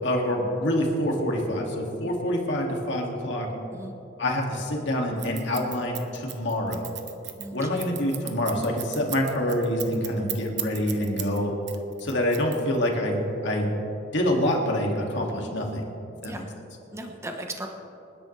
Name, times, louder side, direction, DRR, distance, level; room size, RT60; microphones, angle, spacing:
voice 1, 0.0-3.5 4.2-6.9 7.5-11.5 12.0-13.7 14.1-15.9 16.2-16.4, left 1 dB, 65° left, 0 dB, 2.4 m, -26 dB
Scissors, 5.2-11.4 11.7-12.9, right 12 dB, 65° right, 1.0 m, -36 dB
voice 2, 7.4-7.9 16.2-16.5 16.9-17.7, right 1 dB, 15° right, 3 dB, 1.1 m, -37 dB
27.0 x 10.5 x 3.3 m, 3.0 s
head